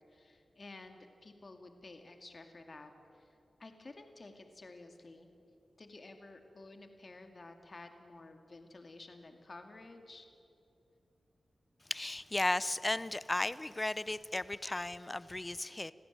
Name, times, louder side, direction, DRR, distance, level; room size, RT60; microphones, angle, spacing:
voice 1, 0.1-5.3 5.8-10.3, left 2 dB, 50° left, 5 dB, 2.4 m, -52 dB
voice 2, 11.9-15.9, left 2 dB, 25° left, 17 dB, 0.7 m, -35 dB
27.0 x 16.0 x 9.1 m, 2.7 s
cardioid pair, 45°, 0 cm